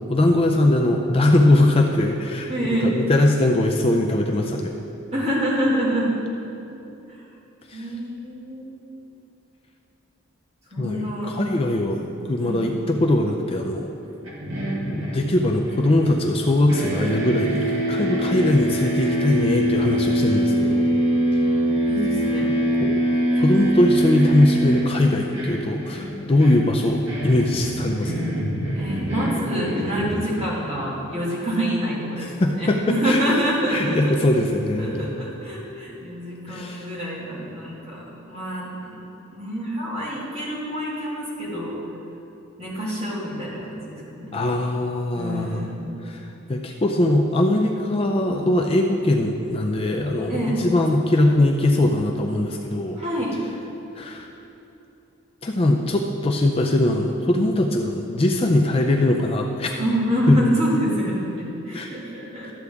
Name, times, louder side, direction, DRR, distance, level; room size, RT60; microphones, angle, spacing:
voice 1, 0.1-4.7 7.7-7.9 10.8-12.0 12.3-13.9 14.9-20.9 22.8-23.0 23.3-28.2 32.2-33.2 33.7-35.3 36.5-36.9 44.3-45.6 46.0-46.2 46.5-53.0 54.0-54.3 55.4-59.7 60.3-60.4 61.7-61.9 62.5-62.6, left 1 dB, 25° left, 2 dB, 0.4 m, -21 dB
voice 2, 2.5-2.9 5.1-6.1 7.1-7.2 7.7-8.7 10.7-11.4 11.8-12.6 21.6-22.6 28.8-34.2 34.8-39.0 39.3-41.8 42.6-44.3 45.1-46.0 50.3-50.6 52.9-53.4 59.8-62.5, equal, 30° right, -6 dB, 2.1 m, -27 dB
sound 1, 14.2-16.4 16.7-30.7, right 1 dB, 70° right, 1.8 m, -24 dB
12.5 x 8.0 x 3.5 m, 2.9 s
head